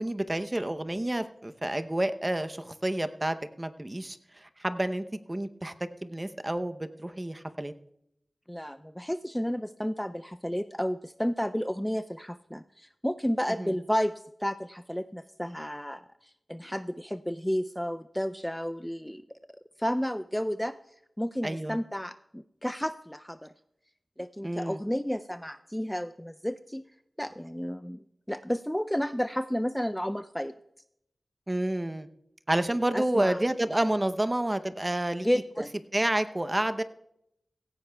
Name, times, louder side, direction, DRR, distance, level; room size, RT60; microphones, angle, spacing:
voice 1, 0.0-4.2 4.6-5.7 6.0-7.7 13.6-13.7 21.4-21.8 24.4-24.8 31.5-32.1 32.5-35.3 35.9-36.8, right 1 dB, 25° right, 10 dB, 0.7 m, -29 dB
voice 2, 8.5-16.0 16.5-19.2 19.8-20.8 21.2-23.5 24.2-26.9 27.2-30.5 32.9-33.4 35.2-35.7, equal, 5° left, 11 dB, 0.4 m, -32 dB
17.0 x 15.5 x 2.3 m, 0.78 s
wide cardioid pair, 55°, 0 cm